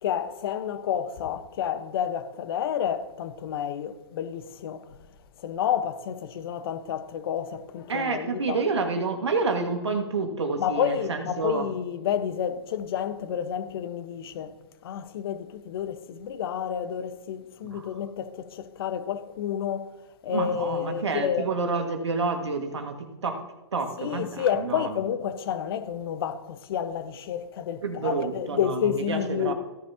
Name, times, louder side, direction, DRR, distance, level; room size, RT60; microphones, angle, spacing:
voice 1, 0.0-4.9 5.4-8.6 10.6-14.6 14.8-19.9 20.2-21.5 24.0-29.5, left 9 dB, 60° left, 1.2 m, -30 dB
voice 2, 7.9-11.7 17.6-18.0 20.3-23.4 23.7-25.0 27.8-29.5, right 4 dB, 80° right, 2.0 m, -29 dB
16.5 x 10.0 x 2.9 m
hypercardioid pair, 120°, 14 cm